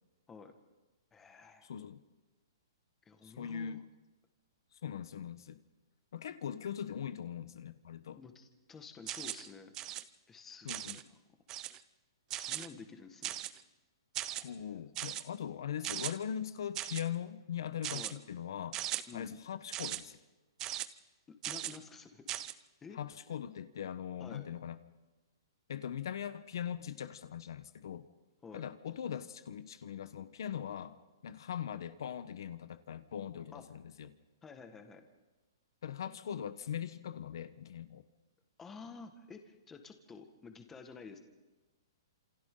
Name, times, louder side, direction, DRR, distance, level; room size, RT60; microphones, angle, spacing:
voice 1, 1.1-1.7 3.0-3.8 8.1-9.7 10.3-11.0 12.3-13.3 14.3-14.6 17.9-18.2 19.1-19.4 21.5-22.2 22.8-23.0 24.2-24.5 28.4-28.6 33.5-33.6 34.4-35.0 38.6-41.2, left 5 dB, 10° left, 6 dB, 1.7 m, -51 dB
voice 2, 1.6-2.0 3.2-3.8 4.7-5.6 6.1-8.2 10.6-11.0 14.4-18.8 19.1-20.2 22.9-24.8 25.7-28.1 28.5-31.0 31.2-34.1 35.8-38.0, left 9 dB, 65° left, 12 dB, 1.1 m, -41 dB
sound 1, 9.1-9.5 9.7-10.0 10.7-11.0 11.5-11.8 12.3-12.7 13.2-13.6 14.1-14.4 15.0-15.2 15.8-16.1 16.7-17.0 17.8-18.1 18.7-19.0 19.7-20.0 20.6-20.9 21.4-21.8 22.3-22.5, right 14 dB, 20° right, 0.7 m, -38 dB
29.5 x 27.5 x 3.9 m, 1.2 s
hypercardioid pair, 160°, 2 cm